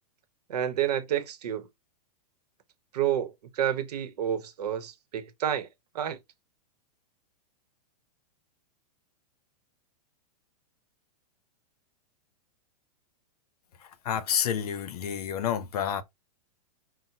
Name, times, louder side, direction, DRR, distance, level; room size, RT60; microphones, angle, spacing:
voice 1, 0.5-1.7 2.9-5.7 5.9-6.2, right 10 dB, 80° right, 0.9 m, -29 dB
voice 2, 14.0-16.0, left 9 dB, 70° left, 0.8 m, -29 dB
5.8 x 2.1 x 2.7 m
supercardioid pair, 155°, 20 cm